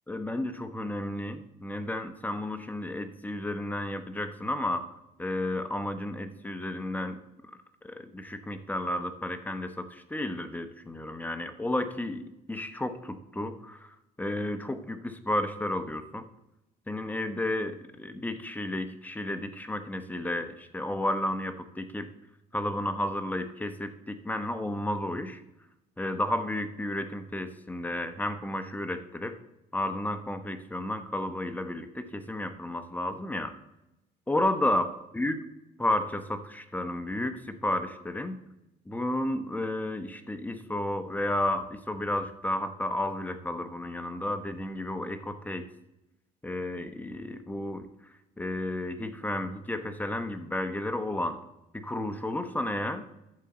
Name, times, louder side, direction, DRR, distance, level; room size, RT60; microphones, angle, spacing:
voice 1, 0.1-4.9 5.2-7.2 7.5-7.6 7.8-16.3 16.9-22.1 22.5-25.4 26.0-29.4 29.7-33.5 34.3-35.4 35.8-38.4 38.9-45.6 46.4-47.9 48.4-51.4 51.7-53.0, left 1 dB, 10° left, 8 dB, 1.0 m, -32 dB
11.5 x 7.3 x 4.2 m, 0.90 s
cardioid pair, 110°, 17 cm